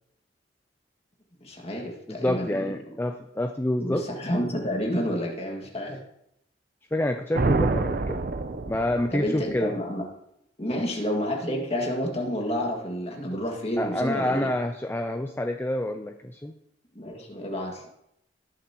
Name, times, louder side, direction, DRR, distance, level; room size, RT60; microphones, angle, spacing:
voice 1, 1.4-2.7 3.8-6.0 9.1-10.1 10.6-14.5 17.0-17.9, equal, 35° left, 0 dB, 2.0 m, -29 dB
voice 2, 2.1-4.0 6.9-8.2 8.7-9.8 13.8-16.6, left 1 dB, 15° left, 6 dB, 0.5 m, -28 dB
sound 1, 7.3-9.3, right 3 dB, 55° right, 0.6 m, -26 dB
19.5 x 7.1 x 3.0 m, 0.79 s
head